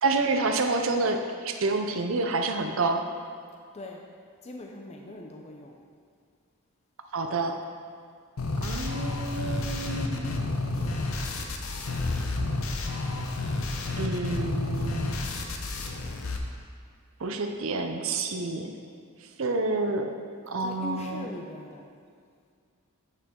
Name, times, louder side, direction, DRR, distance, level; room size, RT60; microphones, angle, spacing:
voice 1, 0.0-3.0 7.1-7.5 8.6-10.6 14.0-15.2 17.2-18.7 19.4-20.1 20.5-21.3, right 3 dB, 65° right, 5 dB, 0.6 m, -28 dB
voice 2, 3.7-4.0 4.4-5.8 20.6-21.9, left 2 dB, 30° left, 1 dB, 0.5 m, -40 dB
sound 1, 8.4-16.4, left 2 dB, 70° left, 0.7 m, -30 dB
8.3 x 6.6 x 3.8 m, 2.2 s
head